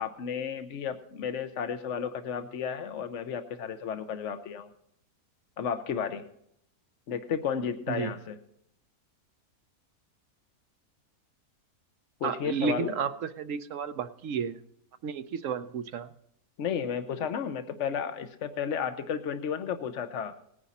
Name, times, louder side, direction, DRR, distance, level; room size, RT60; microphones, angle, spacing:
voice 1, 0.0-4.7 5.6-6.2 7.1-8.4 12.2-13.0 16.6-20.3, left 7 dB, 60° left, 8 dB, 1.0 m, -33 dB
voice 2, 12.2-14.6 15.0-16.1, right 7 dB, 65° right, 11 dB, 0.9 m, -32 dB
18.5 x 9.9 x 4.2 m, 0.74 s
omnidirectional pair, 1.6 m